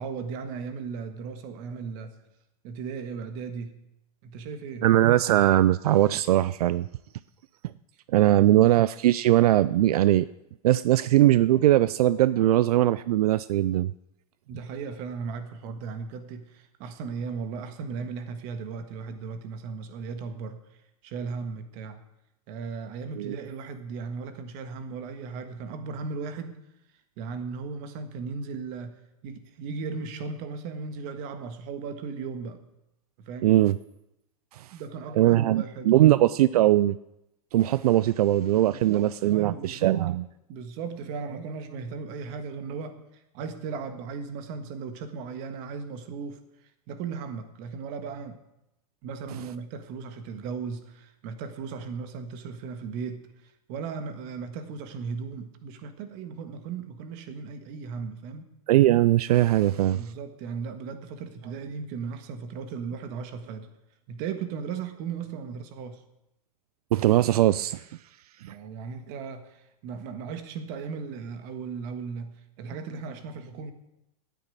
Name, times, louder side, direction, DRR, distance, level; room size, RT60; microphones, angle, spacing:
voice 1, 0.0-2.1 2.6-3.8 4.2-4.9 8.2-8.7 14.5-20.6 21.0-22.0 22.5-26.6 27.2-32.6 33.2-33.6 34.7-36.3 38.6-40.2 40.5-43.0 43.3-46.4 46.9-48.4 49.0-58.4 59.9-63.7 64.1-66.0 68.5-73.7, right 5 dB, 45° right, 8 dB, 1.6 m, -36 dB
voice 2, 4.8-6.9 8.1-10.3 10.6-13.9 23.2-23.4 33.4-33.8 34.5-34.7 35.2-37.0 37.5-40.2 58.7-60.0 66.9-67.9 68.4-68.6, right 14 dB, 80° right, 16 dB, 0.4 m, -20 dB
9.8 x 9.2 x 9.1 m, 0.87 s
supercardioid pair, 150°, 19 cm